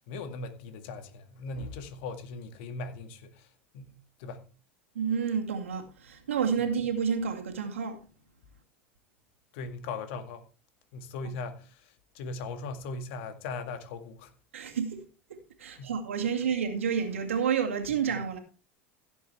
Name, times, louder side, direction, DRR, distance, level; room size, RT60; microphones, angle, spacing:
voice 1, 0.0-3.5 3.7-4.5 9.5-10.4 10.9-14.3 15.8-15.9, left 3 dB, 65° left, 2.0 m, -39 dB
voice 2, 4.9-8.0 14.5-15.0 15.6-18.4, right 7 dB, 85° right, 2.2 m, -29 dB
16.0 x 7.6 x 3.3 m
hypercardioid pair, 85°, 7 cm